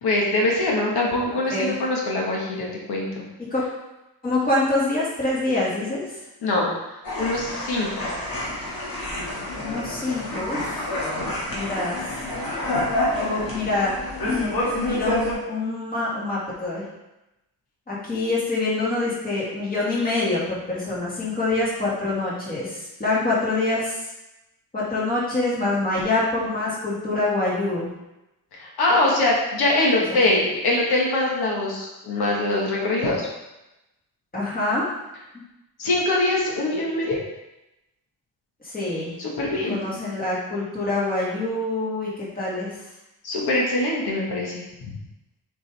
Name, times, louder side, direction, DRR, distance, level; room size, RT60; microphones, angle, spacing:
voice 1, 0.0-3.3 6.4-8.0 28.5-33.3 35.8-37.2 39.2-39.8 43.2-44.9, left 2 dB, 85° left, -2 dB, 1.6 m, -23 dB
voice 2, 4.2-6.2 9.6-10.8 11.5-12.1 13.2-13.9 14.2-14.5 14.7-16.8 17.9-24.0 24.7-27.9 34.3-34.9 35.3-35.4 38.6-39.1 39.7-42.8, left 2 dB, 25° left, -6 dB, 2.0 m, -25 dB
sound 1, 7.0-15.3, left 1 dB, 65° left, 2.2 m, -28 dB
7.1 x 5.2 x 3.4 m, 0.96 s
wide cardioid pair, 170°, 37 cm